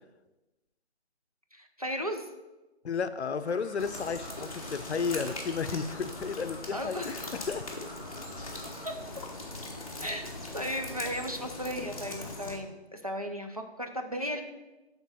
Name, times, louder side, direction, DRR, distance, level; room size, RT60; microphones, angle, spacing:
voice 1, 1.5-2.3 6.7-7.2 10.0-10.3 10.5-14.4, equal, 35° right, 3 dB, 0.5 m, -35 dB
voice 2, 2.8-7.7, left 5 dB, 85° left, 12 dB, 0.6 m, -33 dB
sound 1, 3.4-8.9, right 1 dB, 10° right, 2.0 m, -49 dB
sound 2, 3.8-12.6, left 2 dB, 35° left, 1.0 m, -41 dB
7.2 x 3.9 x 5.5 m, 1.1 s
figure-of-eight pair, 170°, 33 cm